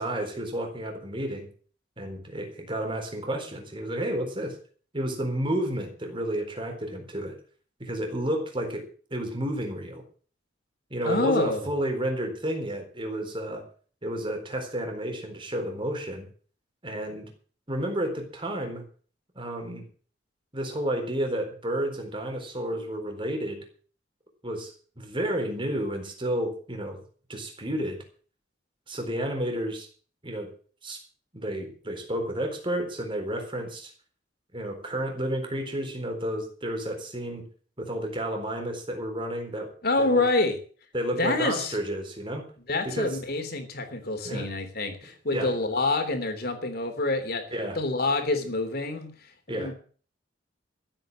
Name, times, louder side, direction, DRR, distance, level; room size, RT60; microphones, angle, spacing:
voice 1, 0.0-1.5 2.0-4.6 4.9-7.4 7.8-10.0 10.9-13.6 14.0-16.3 16.8-17.3 17.7-18.8 19.4-19.8 20.5-23.7 24.4-27.0 27.3-28.0 28.9-29.9 30.2-30.5 30.8-31.0 31.3-33.9 34.5-37.5 37.8-39.7 40.0-40.2 40.9-42.4 42.8-43.2 44.2-44.5 45.3-45.5 47.5-47.8 49.5-49.7, right 1 dB, 25° right, 4 dB, 4.1 m, -31 dB
voice 2, 11.0-11.6 39.8-40.6 41.1-41.8 42.7-47.4 47.7-49.7, left 2 dB, 55° left, 6 dB, 3.3 m, -27 dB
14.5 x 8.9 x 7.6 m, 0.42 s
head